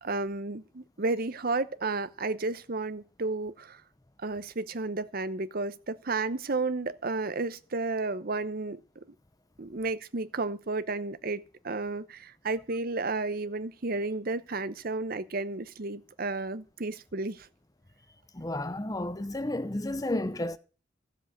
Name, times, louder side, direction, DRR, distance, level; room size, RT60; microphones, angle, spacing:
voice 1, 0.0-3.8 4.2-8.8 9.6-17.5, right 3 dB, 50° right, 0.9 m, -32 dB
voice 2, 18.3-20.6, left 1 dB, 20° left, 0.7 m, -32 dB
13.5 x 7.5 x 7.9 m
head